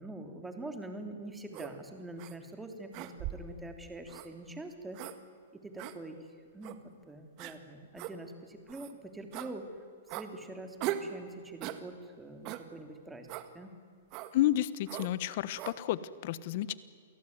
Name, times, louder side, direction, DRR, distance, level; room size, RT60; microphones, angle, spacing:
voice 1, 0.0-5.0 5.5-6.2 6.5-6.8 7.1-9.6 10.1-13.3 13.5-13.7, right 2 dB, 5° right, 5 dB, 3.2 m, -44 dB
sound 1, 1.5-1.7 2.2-2.4 2.9-3.5 4.1-4.3 4.9-5.2 5.8-6.0 6.6-6.8 7.4-7.6 8.0-8.1 8.7-8.9 9.3-9.5 10.1-10.3 10.8-11.1 11.6-11.8 12.5-12.7 13.3-13.5 14.1-14.3 14.9-15.1 15.6-15.8, right 13 dB, 40° right, 1.8 m, -39 dB
voice 2, 14.3-16.7, left 13 dB, 50° left, 17 dB, 1.2 m, -31 dB
28.5 x 18.0 x 9.6 m, 2.3 s
hypercardioid pair, 140°, 0 cm